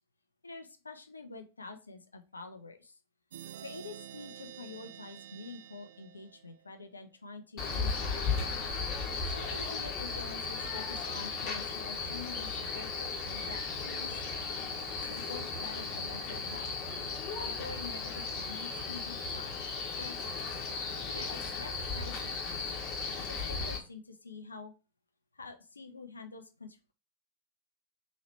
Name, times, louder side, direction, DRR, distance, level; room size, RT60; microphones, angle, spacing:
voice 1, 0.4-3.0 3.6-8.9 9.3-14.2 15.0-16.7 17.2-19.5 20.0-20.2 21.0-22.7 23.3-24.7 25.3-26.9, left 4 dB, 80° left, 7 dB, 0.5 m, -47 dB
sound 1, 3.3-6.9, right 10 dB, 60° right, 0.3 m, -49 dB
Male speech man speaking, 7.6-23.8, left 4 dB, 35° left, 1.0 m, -36 dB
4.0 x 2.9 x 3.2 m, 0.31 s
figure-of-eight pair, 90°, 0 cm